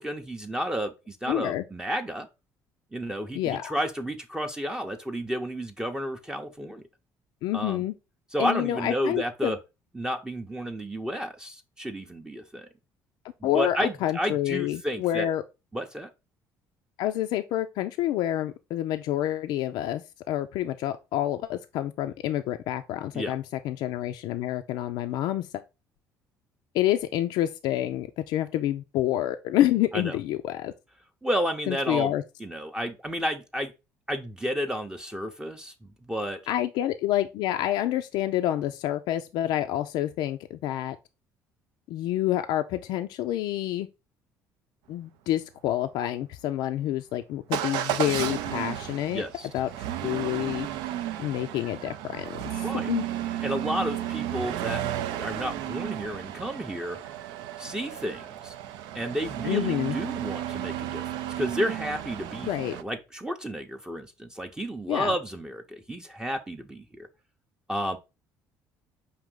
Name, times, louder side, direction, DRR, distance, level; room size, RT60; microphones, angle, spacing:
voice 1, 0.0-2.3 2.9-6.8 7.5-7.8 8.3-9.6 9.9-12.7 13.4-15.3 15.7-16.1 23.1-23.4 29.9-30.2 31.2-32.1 32.4-33.7 34.1-36.4 49.1-49.5 52.6-52.9 53.4-54.8 55.2-57.0 57.6-58.6 58.9-67.1 67.7-68.0, equal, 10° right, 0.6 m, -31 dB
voice 2, 1.3-1.6 3.3-3.8 7.4-7.9 8.4-9.6 13.4-15.4 17.0-25.6 26.7-30.7 31.7-32.2 36.5-41.0 41.9-43.9 44.9-49.2 49.5-49.7 50.0-50.7 51.2-53.1 59.4-60.0 62.4-62.8 64.9-65.1, left 13 dB, 75° left, 0.3 m, -28 dB
Motor vehicle (road) / Engine starting / Accelerating revving vroom, 47.5-62.8, right 12 dB, 80° right, 0.4 m, -33 dB
5.0 x 2.6 x 3.6 m
supercardioid pair, 85°, 8 cm